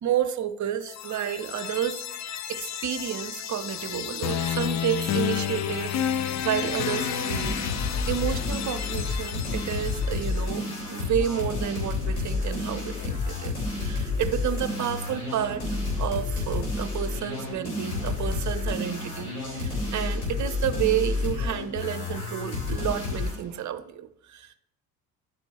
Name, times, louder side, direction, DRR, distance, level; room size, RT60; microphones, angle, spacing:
voice 1, 0.0-7.6 8.1-24.6, right 10 dB, 40° right, 10 dB, 0.7 m, -31 dB
sound 1, 0.8-10.7, left 9 dB, 35° left, 0.6 m, -31 dB
sound 2, 6.9-23.4, left 3 dB, 75° left, 3.6 m, -30 dB
11.0 x 4.4 x 4.3 m, 0.75 s
hypercardioid pair, 55°, 47 cm